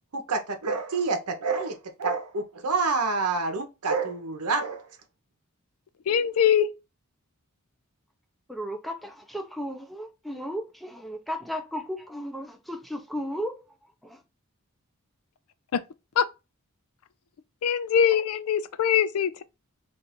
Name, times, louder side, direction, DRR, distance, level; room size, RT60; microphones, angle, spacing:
voice 1, 0.1-4.9, right 4 dB, 90° right, 0.8 m, -28 dB
voice 2, 6.1-6.7 15.7-15.8 16.2-16.3 17.6-19.4, left 8 dB, 70° left, 0.4 m, -22 dB
voice 3, 8.5-13.6 14.0-14.2, equal, ahead, 0.5 m, -35 dB
2.6 x 2.5 x 4.2 m
head